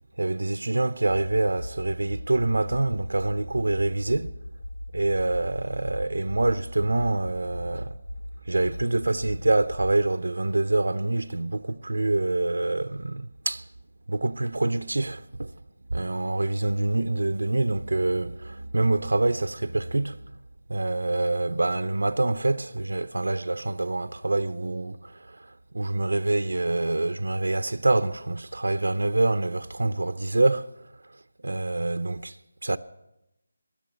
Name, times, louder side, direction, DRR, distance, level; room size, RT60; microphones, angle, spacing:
voice 1, 0.2-4.4 4.9-7.9 8.5-13.7 14.1-15.5 15.9-20.3 20.7-30.9 31.4-32.4 32.6-32.8, right 2 dB, 85° right, 0.7 m, -26 dB
sound 1, 1.4-9.9, left 1 dB, 50° left, 3.1 m, -39 dB
14.5 x 10.5 x 9.5 m
figure-of-eight pair, 180°, 0 cm